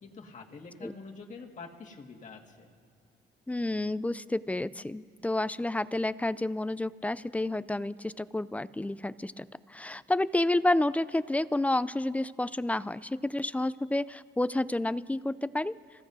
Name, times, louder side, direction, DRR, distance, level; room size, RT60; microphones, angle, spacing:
voice 1, 0.0-2.7, left 4 dB, 40° left, 1 dB, 1.8 m, -46 dB
voice 2, 3.5-15.7, left 1 dB, 5° left, 17 dB, 0.3 m, -30 dB
26.5 x 16.0 x 2.7 m, 2.4 s
cardioid pair, 90°, 20 cm